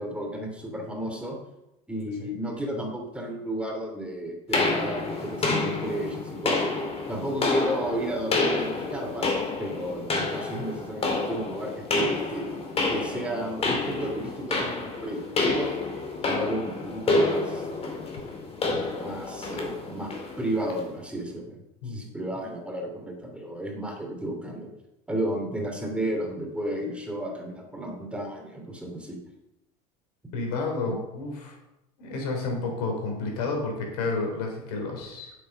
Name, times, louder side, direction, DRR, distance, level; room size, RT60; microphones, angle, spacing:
voice 1, 0.0-1.4 1.9-6.7 7.1-9.3 9.6-12.4 12.9-15.7 16.3-17.7 18.7-20.1 20.4-21.6 21.8-24.7 25.1-29.2, right 1 dB, 5° right, 1 dB, 2.8 m, -33 dB
sound 1, 4.5-20.9, left 3 dB, 30° left, 2.3 m, -28 dB
voice 2, 30.3-31.6 32.0-35.3, left 3 dB, 75° left, 2 dB, 3.5 m, -30 dB
8.4 x 7.4 x 5.4 m, 0.91 s
hypercardioid pair, 95°, 20 cm